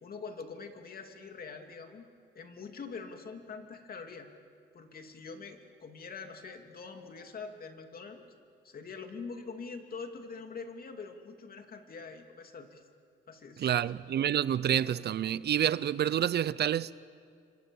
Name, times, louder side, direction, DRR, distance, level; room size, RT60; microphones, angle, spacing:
voice 1, 0.0-2.1 2.3-4.3 4.7-8.2 8.6-12.8 13.3-13.9, left 4 dB, 50° left, 2.8 m, -44 dB
voice 2, 13.6-16.9, right 10 dB, 55° right, 0.6 m, -28 dB
29.0 x 25.0 x 7.1 m
cardioid pair, 90°, 20 cm